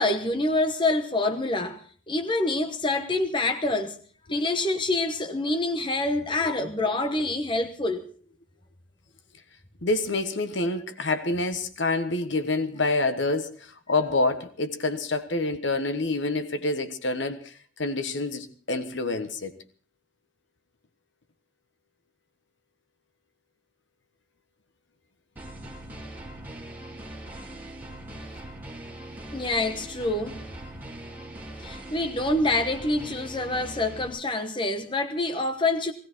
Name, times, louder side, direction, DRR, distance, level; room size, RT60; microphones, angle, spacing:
voice 1, 0.0-1.8 2.1-4.0 4.3-8.1 29.3-30.4 31.6-35.9, left 2 dB, 25° left, 1.0 m, -26 dB
voice 2, 9.8-13.5 13.9-17.4 17.8-19.5, left 2 dB, 65° left, 1.2 m, -27 dB
sound 1, 25.4-34.1, right 1 dB, 10° right, 3.4 m, -41 dB
18.0 x 16.5 x 4.5 m
head